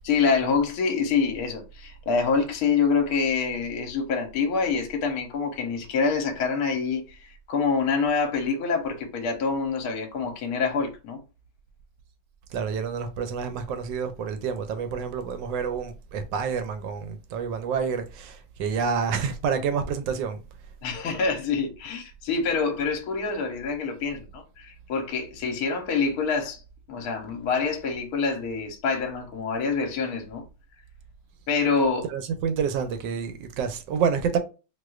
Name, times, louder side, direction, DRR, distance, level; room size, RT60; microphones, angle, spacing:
voice 1, 0.0-11.2 20.8-26.6 26.9-30.4 31.5-32.1, left 5 dB, 60° left, 1.1 m, -26 dB
voice 2, 12.5-20.4 32.1-34.4, right 6 dB, 75° right, 1.2 m, -28 dB
4.2 x 2.4 x 2.4 m
omnidirectional pair, 2.2 m